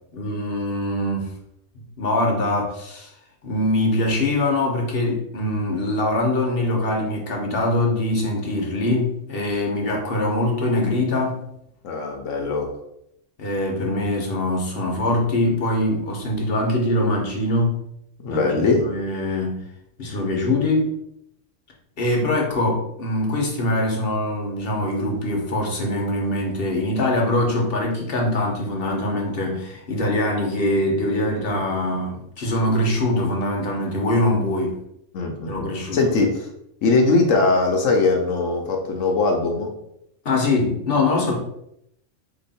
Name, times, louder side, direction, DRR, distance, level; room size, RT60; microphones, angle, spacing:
voice 1, 0.1-1.3 2.0-3.1 3.4-11.4 13.4-17.8 18.3-19.7 20.0-20.9 22.0-34.8 35.5-36.1 40.2-41.3, left 1 dB, 50° left, -1 dB, 1.2 m, -23 dB
voice 2, 11.8-12.7 18.2-18.8 35.1-35.7 35.9-36.5 36.8-39.7, left 3 dB, 80° left, 1 dB, 1.1 m, -20 dB
3.8 x 3.0 x 4.2 m, 0.77 s
omnidirectional pair, 1.3 m